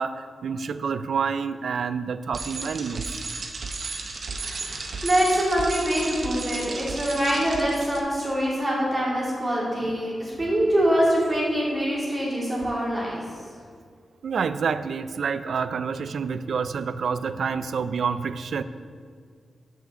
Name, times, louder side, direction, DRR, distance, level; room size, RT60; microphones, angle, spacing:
voice 1, 0.0-3.2 9.8-10.0 14.2-18.6, right 6 dB, 70° right, 13 dB, 0.3 m, -28 dB
Bicycle, 2.3-8.0, right 3 dB, 50° right, 0.7 m, -34 dB
voice 2, 4.3-13.2, equal, 25° right, -5 dB, 2.5 m, -24 dB
13.0 x 5.7 x 3.7 m, 2.1 s
wide cardioid pair, 140°, 0 cm